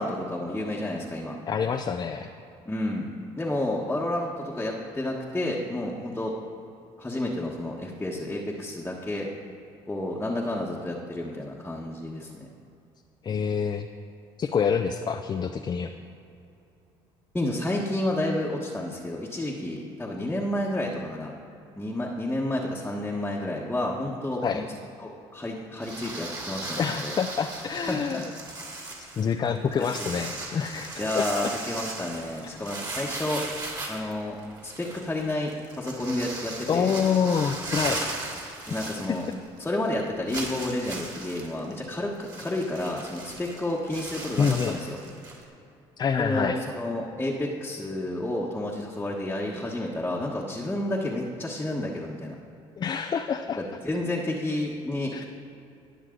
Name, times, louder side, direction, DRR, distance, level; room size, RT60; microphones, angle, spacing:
voice 1, 0.0-1.4 2.6-3.1 3.4-6.4 7.0-9.3 9.9-12.5 17.3-21.3 21.8-24.6 25.0-27.1 27.9-28.2 29.8-30.1 31.0-33.4 33.9-34.4 34.6-36.9 38.7-39.2 39.6-45.0 46.2-52.4 53.6-55.2, left 1 dB, 10° left, -4 dB, 1.3 m, -30 dB
voice 2, 1.5-2.3 13.2-13.9 14.4-15.9 24.4-24.7 26.8-28.3 28.6-31.6 36.7-38.0 44.4-44.8 46.0-46.6 52.8-53.6 55.1-55.2, left 6 dB, 35° left, 5 dB, 0.5 m, -27 dB
sound 1, 25.8-39.6 39.9-40.0 40.3-45.4, right 2 dB, 30° right, 2.8 m, -37 dB
19.5 x 6.5 x 3.8 m, 2.7 s
supercardioid pair, 80°, 12 cm